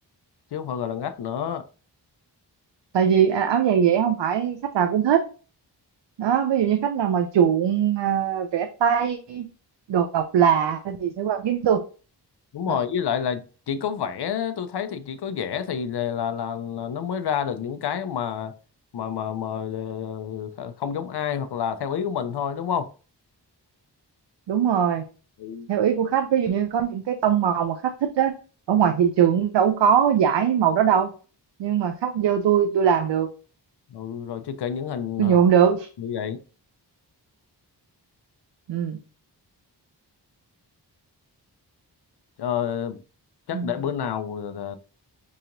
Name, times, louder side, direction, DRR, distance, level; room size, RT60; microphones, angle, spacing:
voice 1, 0.5-1.7 12.5-18.5 18.9-22.9 25.4-25.7 33.9-35.4 36.0-36.4 42.4-43.0 43.5-44.8, left 8 dB, 70° left, 0.5 m, -29 dB
voice 2, 2.9-5.2 6.2-9.5 9.9-11.8 12.7-12.8 24.5-25.0 25.7-28.3 28.7-31.1 31.6-33.3 35.2-35.9 38.7-39.0 43.5-43.7, right 8 dB, 85° right, 0.5 m, -21 dB
4.8 x 2.9 x 2.5 m
wide cardioid pair, 100°, 42 cm